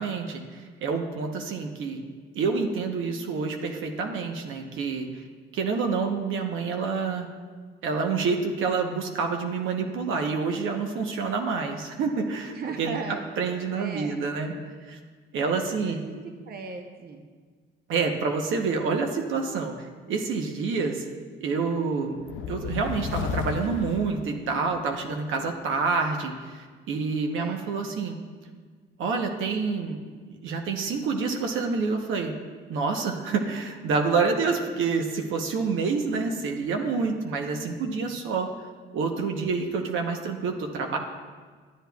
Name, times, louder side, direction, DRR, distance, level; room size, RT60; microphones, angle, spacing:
voice 1, 0.0-2.0 2.3-5.2 5.5-7.3 7.8-13.0 13.4-14.5 14.9-15.0 15.3-16.0 17.9-19.7 20.1-21.0 21.4-22.2 22.5-28.2 29.0-30.0 30.4-32.3 32.7-38.5 38.9-41.0, right 4 dB, 80° right, 3 dB, 0.9 m, -27 dB
voice 2, 12.5-14.2 15.8-16.2 16.5-17.3 27.4-27.9, right 5 dB, 50° right, 4 dB, 0.8 m, -38 dB
sound 1, 22.2-24.9, left 7 dB, 75° left, 0.4 m, -34 dB
12.0 x 8.2 x 2.3 m, 1.6 s
cardioid pair, 90°, 20 cm